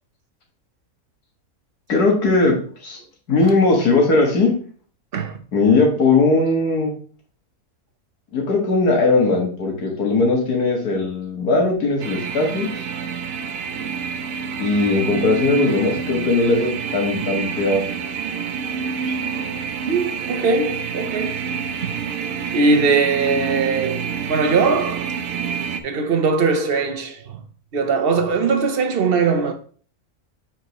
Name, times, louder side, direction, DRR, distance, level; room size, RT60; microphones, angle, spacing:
voice 1, 1.9-3.0 3.3-4.5 5.5-6.9 8.3-12.9 14.6-17.9, left 3 dB, 90° left, 2.2 m, -19 dB
sound 1, 12.0-25.8, right 6 dB, 70° right, 1.1 m, -28 dB
voice 2, 19.8-21.4 21.8-21.9 22.5-25.1 25.8-27.4 27.7-29.5, right 4 dB, 45° right, 0.9 m, -20 dB
7.5 x 4.5 x 3.0 m
omnidirectional pair, 1.6 m